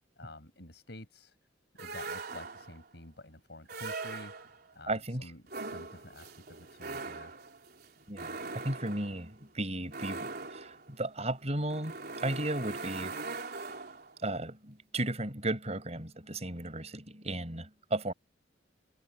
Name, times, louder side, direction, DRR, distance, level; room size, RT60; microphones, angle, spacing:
voice 1, 0.2-1.4 1.8-4.3 4.7-7.4, left 1 dB, 65° left, 6.8 m, -49 dB
sound 1, 1.8-2.9 3.7-4.7 5.5-14.2, right 3 dB, 55° right, 3.7 m, -41 dB
voice 2, 4.9-5.3 8.1-11.9 12.2-13.3 14.2-18.1, right 1 dB, 35° right, 4.8 m, -35 dB
head